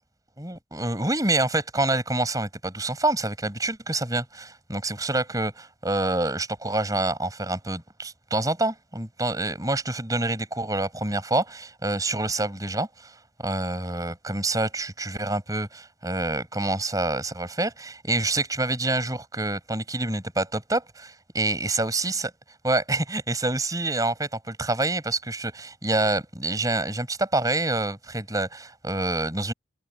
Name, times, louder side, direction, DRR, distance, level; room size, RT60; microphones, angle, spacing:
voice 1, 0.4-22.3 22.6-29.5, right 2 dB, 20° right, 5.8 m, -27 dB
head